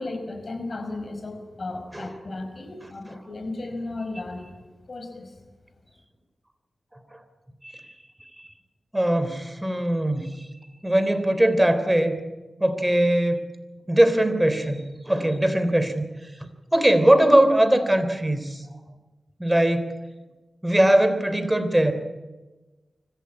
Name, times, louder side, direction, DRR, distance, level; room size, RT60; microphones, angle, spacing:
voice 1, 0.0-4.5 4.9-5.4, left 2 dB, 55° left, 7 dB, 5.2 m, -34 dB
voice 2, 8.9-10.3 10.8-12.2 12.6-13.4 13.9-16.1 16.7-18.6 19.4-19.9 20.6-21.9, right 1 dB, 10° right, 10 dB, 3.4 m, -20 dB
25.0 x 14.5 x 9.7 m, 1.2 s
cardioid pair, 55°, 0 cm